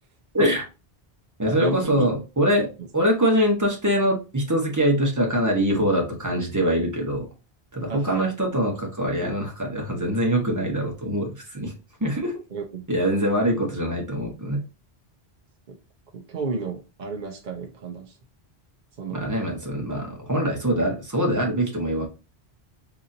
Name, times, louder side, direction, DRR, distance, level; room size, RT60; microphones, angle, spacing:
voice 1, 0.3-0.7 1.4-7.3 7.7-11.7 12.0-12.3 12.9-14.6 19.1-22.1, equal, 20° right, 1.0 m, -23 dB
voice 2, 1.5-2.1 7.9-8.3 12.5-12.8 16.1-18.1 19.0-19.3, right 3 dB, 50° right, 0.7 m, -31 dB
3.9 x 2.9 x 2.6 m
omnidirectional pair, 1.1 m